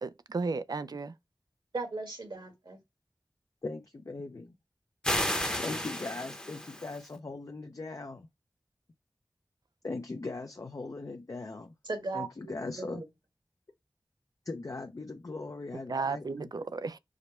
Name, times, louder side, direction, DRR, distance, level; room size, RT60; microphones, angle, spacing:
voice 1, 0.0-1.1 15.9-17.0, right 4 dB, 60° right, 0.4 m, -34 dB
voice 2, 1.7-2.8 11.9-13.0, right 3 dB, 80° right, 1.7 m, -37 dB
voice 3, 3.6-4.5 5.6-8.3 9.8-11.7 12.1-13.0 14.5-16.5, left 3 dB, 45° left, 0.5 m, -39 dB
sound 1, 5.0-7.1, left 1 dB, 10° left, 0.8 m, -32 dB
4.9 x 2.1 x 4.2 m
wide cardioid pair, 75°, 8 cm